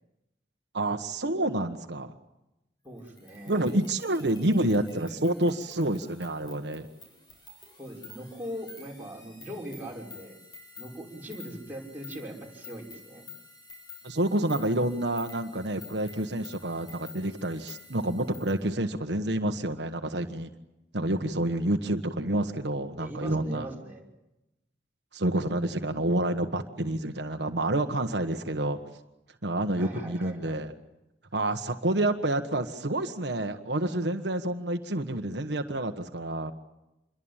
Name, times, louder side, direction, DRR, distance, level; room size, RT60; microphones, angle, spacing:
voice 1, 0.7-2.1 3.5-6.9 14.0-20.5 20.9-23.7 25.1-28.8 29.4-30.7 31.3-36.5, right 1 dB, 70° right, 6 dB, 1.4 m, -28 dB
voice 2, 2.8-3.7 7.8-10.3 10.8-13.2 23.0-24.0 29.8-30.6, equal, 10° right, -3 dB, 6.1 m, -40 dB
sound 1, 3.0-18.6, left 4 dB, 25° left, 7.5 m, -50 dB
27.0 x 22.5 x 9.0 m, 0.92 s
head